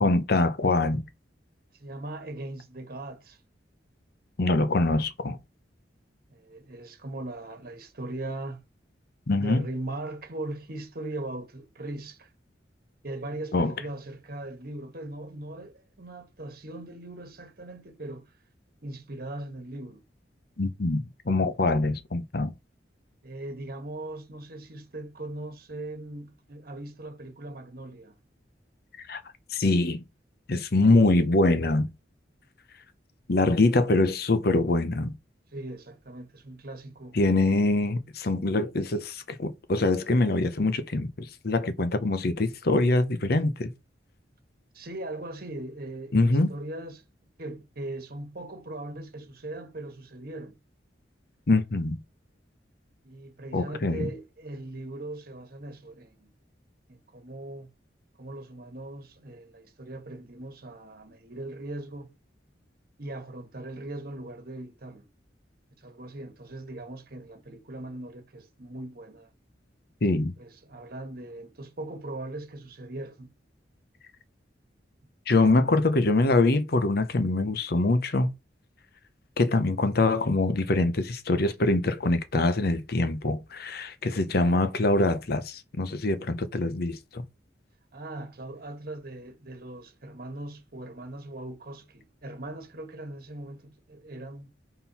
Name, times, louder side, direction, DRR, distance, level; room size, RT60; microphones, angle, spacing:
voice 1, 0.0-1.1 4.4-5.4 9.3-9.7 13.5-13.7 20.6-22.5 29.1-29.2 29.5-30.0 30.5-31.9 33.3-35.1 37.1-43.7 46.1-46.5 51.5-52.0 53.5-54.1 70.0-70.3 75.3-78.3 79.4-87.2, left 2 dB, 55° left, 0.8 m, -24 dB
voice 2, 1.7-3.4 6.3-8.6 9.4-12.3 13.0-18.4 18.8-20.0 23.2-28.2 35.5-37.2 44.7-47.0 47.4-50.6 53.0-56.3 56.9-57.7 58.2-62.1 63.0-65.1 65.8-69.3 70.4-73.3 87.9-94.5, right 2 dB, 55° right, 1.4 m, -39 dB
4.4 x 3.8 x 5.6 m
head